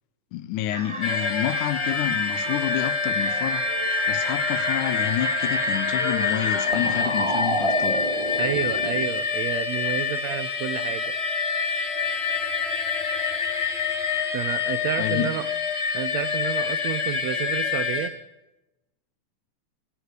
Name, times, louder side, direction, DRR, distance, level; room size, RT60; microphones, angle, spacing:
voice 1, 0.3-8.1 15.0-15.4, left 12 dB, 80° left, 2.2 m, -29 dB
sound 1, 0.7-9.0, right 2 dB, 50° right, 0.3 m, -30 dB
sound 2, 1.0-18.1, left 5 dB, 35° left, 1.1 m, -26 dB
voice 2, 8.4-11.1 14.3-15.5 15.9-18.1, right 12 dB, 75° right, 1.7 m, -30 dB
19.5 x 10.5 x 6.6 m
omnidirectional pair, 3.6 m